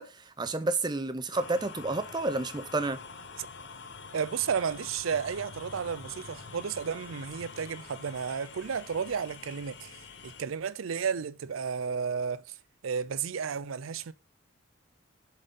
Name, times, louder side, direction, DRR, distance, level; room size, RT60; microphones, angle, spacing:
voice 1, 0.0-3.0, right 2 dB, 20° right, 0.6 m, -30 dB
sound 1, 1.3-10.4, left 4 dB, 60° left, 0.9 m, -46 dB
voice 2, 4.1-12.6 12.8-14.1, right 6 dB, 85° right, 0.5 m, -33 dB
7.3 x 4.2 x 5.3 m
head